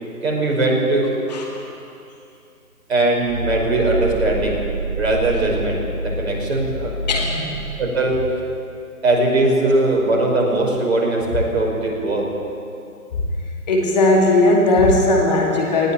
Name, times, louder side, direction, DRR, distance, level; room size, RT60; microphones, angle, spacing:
voice 1, 0.2-1.1 2.9-4.6 5.0-6.9 7.8-8.2 9.0-12.3, right 2 dB, 45° right, -1 dB, 5.6 m, -20 dB
voice 2, 1.3-1.7 7.1-7.5 13.7-15.9, left 2 dB, 25° left, -1 dB, 2.4 m, -17 dB
sound 1, 3.3-8.1, right 2 dB, 10° right, 6.0 m, -27 dB
20.0 x 17.5 x 8.6 m, 2.6 s
figure-of-eight pair, 155°, 46 cm